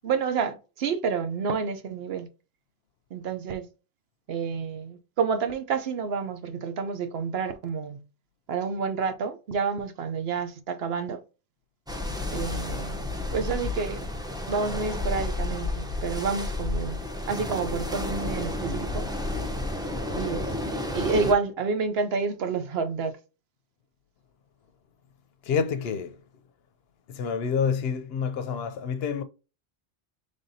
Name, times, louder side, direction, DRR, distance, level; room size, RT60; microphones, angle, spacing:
voice 1, 0.0-2.3 3.1-3.7 4.3-8.0 8.5-11.2 12.3-13.0 13.3-14.1 14.5-17.0 17.3-19.1 20.2-23.1, right 5 dB, 70° right, 0.9 m, -29 dB
sound 1, 11.9-21.3, left 2 dB, 5° right, 0.5 m, -31 dB
voice 2, 25.4-26.2 27.1-29.2, left 6 dB, 70° left, 0.8 m, -28 dB
5.4 x 3.4 x 2.6 m
omnidirectional pair, 1.1 m